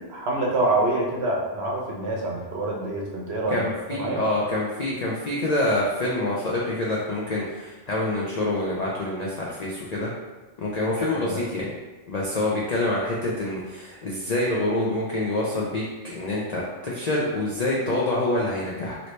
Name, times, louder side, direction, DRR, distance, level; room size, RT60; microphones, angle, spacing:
voice 1, 0.0-3.6 3.9-4.2 11.0-11.4, right 2 dB, 60° right, -2 dB, 0.8 m, -26 dB
voice 2, 3.5-10.1 10.6-11.7 12.1-19.0, left 1 dB, 75° left, -5 dB, 0.3 m, -26 dB
3.0 x 2.7 x 3.1 m, 1.2 s
omnidirectional pair, 1.4 m